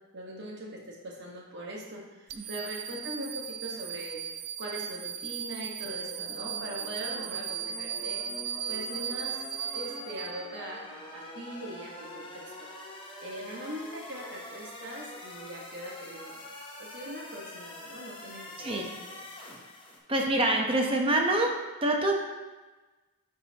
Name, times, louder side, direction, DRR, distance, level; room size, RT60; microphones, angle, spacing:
voice 1, 0.1-8.2 8.7-9.4 9.7-12.9 13.2-16.4 16.8-18.7 19.1-19.2, right 1 dB, 50° right, -2 dB, 1.5 m, -41 dB
sound 1, 2.3-10.8, right 9 dB, 90° right, 0.5 m, -37 dB
sound 2, 5.8-20.0, left 1 dB, 25° left, 0.9 m, -45 dB
voice 2, 20.1-21.5 21.8-22.1, right 1 dB, 25° right, 1 dB, 0.9 m, -25 dB
9.6 x 5.4 x 2.9 m, 1.2 s
head